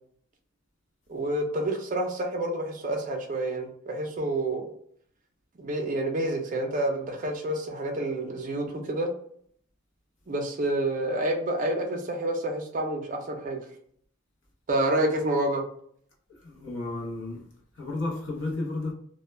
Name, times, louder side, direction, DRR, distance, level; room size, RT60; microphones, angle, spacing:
voice 1, 1.1-4.7 5.6-9.1 10.3-13.7 14.7-15.6, right 1 dB, 35° right, 0.4 m, -28 dB
voice 2, 16.4-17.4 17.7-18.9, left 2 dB, 60° left, 0.8 m, -32 dB
2.1 x 2.1 x 3.1 m
head